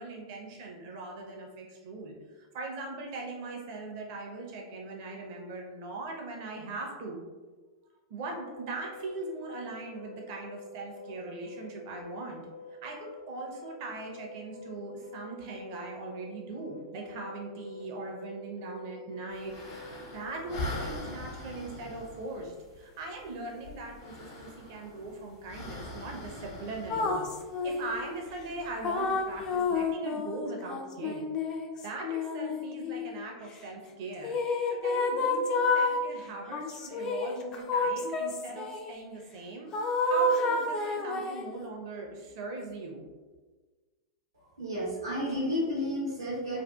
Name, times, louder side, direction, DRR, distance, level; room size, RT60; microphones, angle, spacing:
voice 1, 0.0-7.2 8.1-12.4 12.8-19.8 20.1-27.3 27.6-31.3 31.8-39.7 40.0-43.0, right 2 dB, 50° right, 0 dB, 0.6 m, -40 dB
sound 1, 8.3-20.9, left 5 dB, 90° left, 0.6 m, -47 dB
sound 2, 19.3-29.9, left 1 dB, 55° left, 0.7 m, -43 dB
sound 3, 26.9-28.1 28.8-33.2 34.2-36.0 36.5-38.9 39.7-41.5, left 3 dB, 30° left, 0.3 m, -29 dB
voice 2, 44.6-46.6, equal, 80° right, -7 dB, 0.8 m, -31 dB
2.6 x 2.3 x 2.3 m, 1.3 s
figure-of-eight pair, 95°, 2 cm